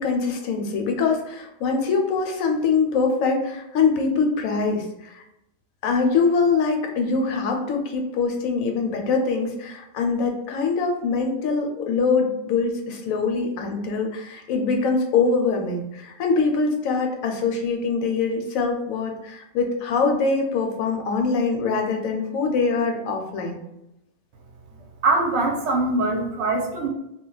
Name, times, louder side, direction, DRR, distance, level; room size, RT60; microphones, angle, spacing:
voice 1, 0.0-5.2 5.8-23.6, left 4 dB, 85° left, 3 dB, 1.0 m, -23 dB
voice 2, 25.0-26.9, right 2 dB, 65° right, 1 dB, 0.8 m, -22 dB
2.3 x 2.1 x 3.8 m, 0.87 s
omnidirectional pair, 1.4 m